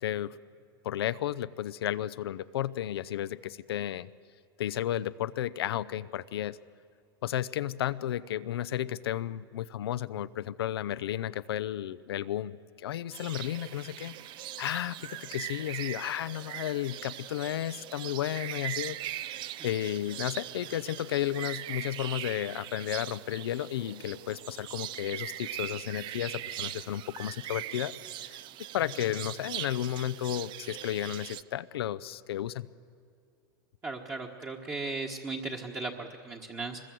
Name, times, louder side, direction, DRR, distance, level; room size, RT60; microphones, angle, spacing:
voice 1, 0.0-0.4 0.8-4.1 4.6-6.6 7.2-14.1 14.6-19.4 19.6-28.0 28.2-28.4 28.7-32.7, left 12 dB, 85° left, 15 dB, 0.6 m, -33 dB
sound 1, 13.1-31.4, right 13 dB, 40° right, 0.6 m, -40 dB
voice 2, 33.8-36.8, right 3 dB, 20° right, -1 dB, 1.5 m, -36 dB
24.5 x 21.5 x 7.7 m, 2.4 s
supercardioid pair, 125°, 13 cm